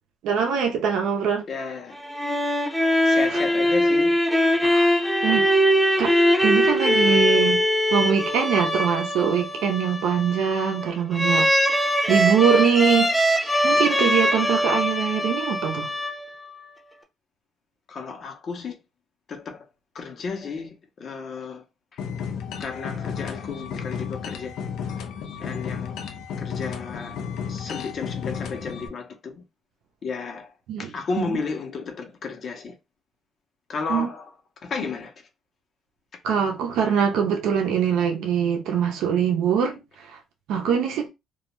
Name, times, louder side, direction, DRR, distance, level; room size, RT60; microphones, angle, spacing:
voice 1, 0.2-1.4 3.3-3.4 4.6-4.9 5.2-5.5 6.0-6.2 6.4-7.6 7.9-11.5 12.1-15.9 30.7-30.9 31.2-31.3 33.9-34.1 36.2-40.1 40.5-41.1, right 7 dB, 90° right, 0.6 m, -23 dB
voice 2, 1.5-2.0 3.1-4.2 17.9-18.8 19.3-19.6 19.9-21.6 22.6-24.6 25.4-26.0 26.4-27.2 27.5-29.4 30.0-30.5 30.8-32.7 33.7-34.2 34.6-35.1, left 4 dB, 55° left, 0.7 m, -32 dB
sound 1, 1.9-16.6, equal, ahead, 0.6 m, -22 dB
sound 2, 22.0-28.9, left 7 dB, 85° left, 0.4 m, -33 dB
2.3 x 2.1 x 2.9 m
cardioid pair, 90°, 0 cm